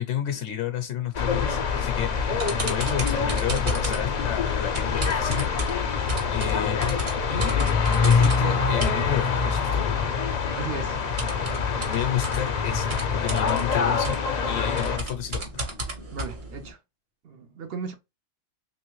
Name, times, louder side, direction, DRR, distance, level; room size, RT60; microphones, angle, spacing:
voice 1, 0.0-2.1 2.6-5.5 6.3-7.0 7.3-7.6 8.0-9.8 11.9-15.6, left 10 dB, 75° left, 0.9 m, -31 dB
sound 1, 1.1-15.0, left 5 dB, 50° left, 0.5 m, -25 dB
sound 2, 2.1-9.9 10.9-16.7, right 1 dB, 45° right, 1.3 m, -34 dB
voice 2, 10.6-11.0 16.1-16.8 17.2-18.0, right 5 dB, 60° right, 0.8 m, -35 dB
3.3 x 3.1 x 3.0 m
omnidirectional pair, 1.3 m